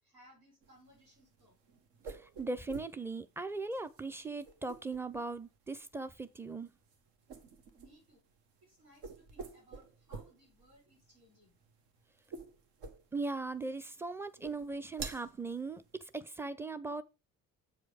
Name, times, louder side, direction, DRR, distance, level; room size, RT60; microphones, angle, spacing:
voice 1, 0.0-1.6 7.7-8.2 8.6-11.5, right 1 dB, 85° right, 4.4 m, -63 dB
sound 1, 0.6-16.2, right 4 dB, 60° right, 1.4 m, -51 dB
voice 2, 2.1-6.7 13.1-17.0, right 3 dB, 5° right, 0.7 m, -39 dB
8.0 x 4.8 x 5.0 m
figure-of-eight pair, 45°, 45 cm